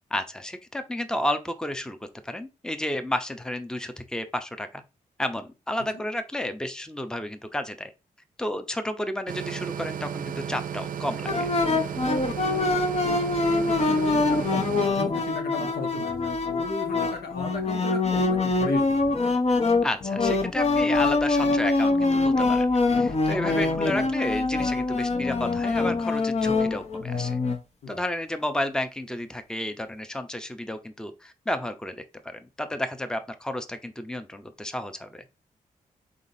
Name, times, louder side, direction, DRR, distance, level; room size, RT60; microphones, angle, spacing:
voice 1, 0.1-4.8 5.2-7.9 8.4-11.5 19.8-27.4 27.9-35.2, left 1 dB, 5° left, 0.7 m, -32 dB
sound 1, 9.3-14.9, right 8 dB, 60° right, 0.4 m, -34 dB
sound 2, 11.3-27.6, left 3 dB, 40° left, 0.8 m, -24 dB
voice 2, 13.5-16.3 16.6-19.1 27.8-28.0, left 3 dB, 80° left, 0.9 m, -36 dB
4.0 x 3.7 x 2.7 m
supercardioid pair, 45°, 16 cm